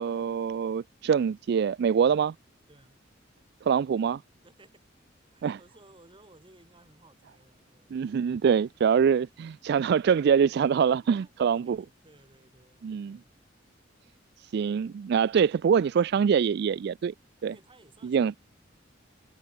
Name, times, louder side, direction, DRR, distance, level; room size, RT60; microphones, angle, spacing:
voice 1, 0.0-2.3 3.7-4.2 5.4-5.6 7.9-11.8 12.8-13.2 14.4-17.1 17.4-17.5 18.0-18.4, right 7 dB, 60° right, 0.3 m, -24 dB
voice 2, 2.7-3.0 4.4-4.8 5.2-8.6 11.0-13.4 17.5-18.4, right 2 dB, 25° right, 6.2 m, -58 dB
head